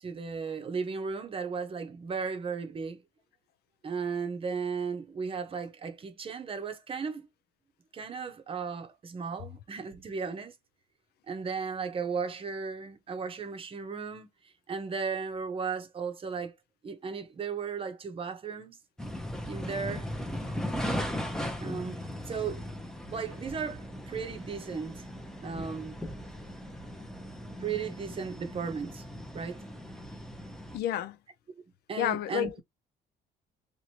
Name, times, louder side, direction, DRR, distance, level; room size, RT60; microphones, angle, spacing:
voice 1, 0.0-3.0 3.8-7.3 7.9-10.5 11.3-14.3 14.7-16.5 16.8-18.8 19.5-20.1 21.6-22.6 23.1-25.1 25.4-26.0 27.2-29.1 29.3-29.7 31.9-32.5, right 5 dB, 30° right, 0.8 m, -35 dB
sound 1, 19.0-30.8, equal, 5° left, 0.6 m, -38 dB
voice 2, 30.7-31.2 32.0-32.6, left 11 dB, 70° left, 0.4 m, -30 dB
3.0 x 2.6 x 2.8 m
cardioid pair, 110°, 17 cm